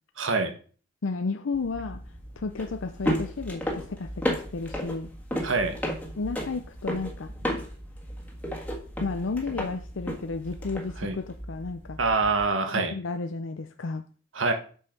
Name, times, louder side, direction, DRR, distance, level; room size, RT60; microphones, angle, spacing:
voice 1, 0.2-0.5 5.4-5.7 11.0-11.2 12.0-12.9 14.3-14.5, right 3 dB, 75° right, 6 dB, 1.4 m, -25 dB
voice 2, 1.0-5.1 6.2-7.3 9.0-12.0 12.7-14.0, left 4 dB, 75° left, 7 dB, 0.6 m, -33 dB
sound 1, 1.5-12.5, equal, 5° left, 1.6 m, -34 dB
8.2 x 5.5 x 5.9 m, 0.42 s
head